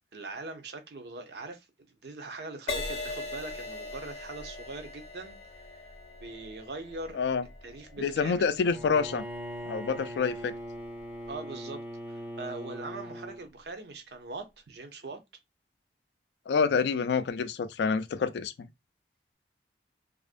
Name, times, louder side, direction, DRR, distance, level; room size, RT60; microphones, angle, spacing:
voice 1, 0.1-1.7 2.0-5.4 5.7-5.8 6.2-7.2 7.6-8.6 11.3-15.2, right 3 dB, 70° right, 0.6 m, -41 dB
Crash cymbal, 2.7-10.3 11.0-11.3, left 2 dB, 35° left, 0.6 m, -41 dB
voice 2, 8.0-9.2 9.7-10.5 16.5-18.7, left 5 dB, 75° left, 0.3 m, -27 dB
Bowed string instrument, 8.6-13.4, equal, 10° right, 0.4 m, -40 dB
2.4 x 2.0 x 2.4 m
head